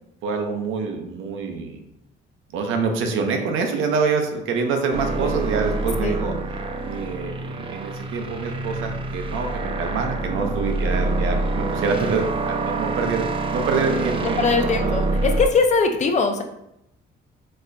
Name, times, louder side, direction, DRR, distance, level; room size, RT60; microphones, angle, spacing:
voice 1, 0.2-1.8 2.5-6.3 6.8-14.5 14.8-15.0, right 4 dB, 85° right, 4 dB, 0.6 m, -26 dB
sound 1, 4.9-15.5, right 3 dB, 25° right, 0.3 m, -26 dB
voice 2, 14.2-16.4, left 4 dB, 35° left, 5 dB, 0.4 m, -21 dB
4.2 x 2.1 x 2.5 m, 0.82 s
cardioid pair, 90°, 20 cm